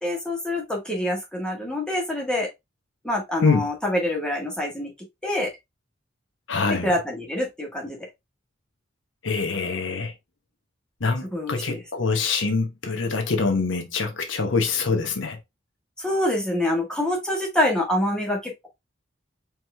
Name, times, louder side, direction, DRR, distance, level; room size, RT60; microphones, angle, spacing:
voice 1, 0.0-2.5 3.0-4.9 5.2-5.5 6.7-8.0 11.3-11.8 16.0-18.7, left 1 dB, 5° left, 1.5 m, -26 dB
voice 2, 6.5-6.9 9.2-10.1 11.0-15.4, left 4 dB, 80° left, 0.9 m, -24 dB
4.7 x 3.0 x 3.3 m
head